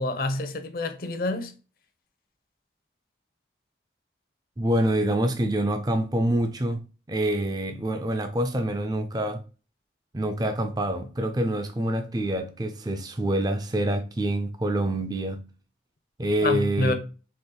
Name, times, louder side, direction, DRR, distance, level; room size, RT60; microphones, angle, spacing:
voice 1, 0.0-1.5 16.4-16.9, left 2 dB, 50° left, 0.7 m, -27 dB
voice 2, 4.6-6.8 7.1-9.4 10.1-15.4 16.2-16.9, right 1 dB, 20° right, 0.4 m, -26 dB
4.4 x 3.0 x 3.8 m
head